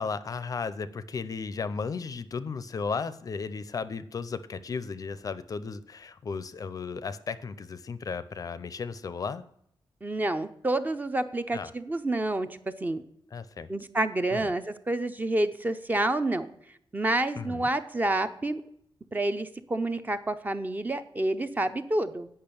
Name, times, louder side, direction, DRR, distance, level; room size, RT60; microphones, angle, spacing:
voice 1, 0.0-9.4 11.5-11.7 13.3-13.7 14.3-14.5 17.4-17.7, left 5 dB, 45° left, 14 dB, 0.4 m, -35 dB
voice 2, 10.0-13.0 13.7-16.5 16.9-18.6 19.1-22.3, right 2 dB, 20° right, 10 dB, 0.5 m, -28 dB
8.7 x 5.5 x 6.8 m, 0.71 s
wide cardioid pair, 175°, 9 cm